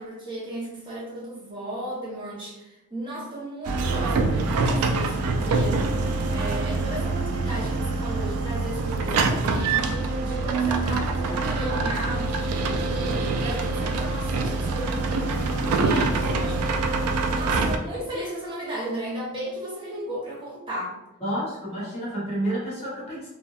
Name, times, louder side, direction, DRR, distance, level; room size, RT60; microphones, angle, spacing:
voice 1, 0.0-20.9, right 1 dB, 20° right, -6 dB, 0.7 m, -35 dB
sound 1, 3.6-17.8, right 3 dB, 80° right, 0.3 m, -25 dB
voice 2, 21.2-23.3, right 1 dB, 25° left, -7 dB, 0.9 m, -30 dB
2.7 x 2.2 x 2.3 m, 0.96 s
head